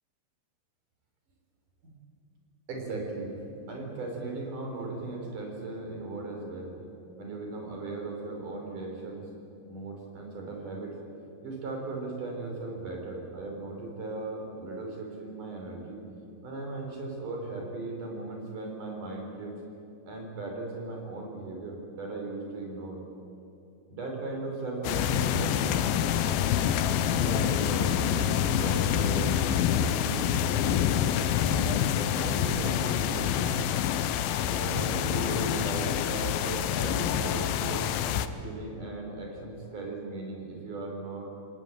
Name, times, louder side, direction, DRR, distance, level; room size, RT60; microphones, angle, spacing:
voice 1, 2.7-3.3 3.7-6.8 7.2-9.3 9.7-11.0 11.4-16.0 16.4-19.6 20.1-23.0 23.9-26.5 26.9-29.4 29.7-30.4 30.8-31.0 31.4-33.6 34.5-37.9 38.4-41.3, right 2 dB, 60° right, 1 dB, 6.1 m, -37 dB
sound 1, 24.8-38.3, left 9 dB, 90° left, 2.8 m, -27 dB
28.0 x 19.0 x 9.1 m, 2.7 s
omnidirectional pair, 4.1 m